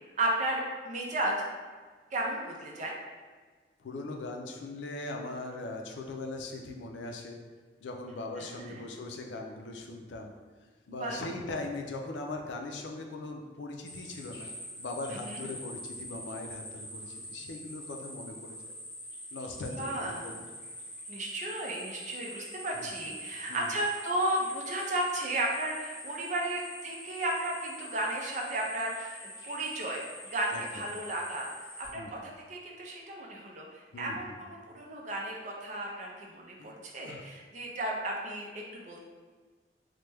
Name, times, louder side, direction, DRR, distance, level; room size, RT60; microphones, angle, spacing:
voice 1, 0.2-1.4 2.1-2.9 8.4-8.8 10.9-11.2 15.1-15.4 19.6-20.3 21.1-29.2 29.4-31.5 31.8-39.1, right 1 dB, 40° right, -1 dB, 0.5 m, -34 dB
voice 2, 3.8-7.4 7.8-10.3 10.9-14.5 14.8-18.6 19.3-20.4 22.8-22.9 23.5-23.7 30.5-30.8 31.9-32.2 33.9-34.4 36.6-36.7 37.0-37.2, left 2 dB, 85° left, 2 dB, 0.4 m, -40 dB
sound 1, 13.9-31.9, equal, 45° left, 1.3 m, -45 dB
3.1 x 2.1 x 3.3 m, 1.4 s
head